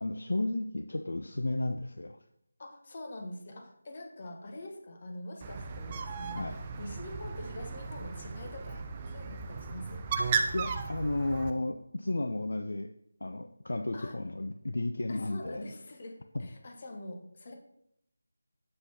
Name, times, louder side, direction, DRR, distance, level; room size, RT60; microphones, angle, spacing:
voice 1, 0.0-2.2 6.3-6.6 10.5-12.9 13.2-15.7 16.3-16.5, left 2 dB, 55° left, 7 dB, 0.3 m, -33 dB
voice 2, 2.6-10.0 13.9-14.2 15.1-17.5, left 1 dB, 35° left, 3 dB, 1.0 m, -45 dB
Bird, 5.4-11.5, right 5 dB, 20° right, 0.4 m, -35 dB
7.5 x 5.8 x 2.8 m, 0.76 s
figure-of-eight pair, 160°, 0 cm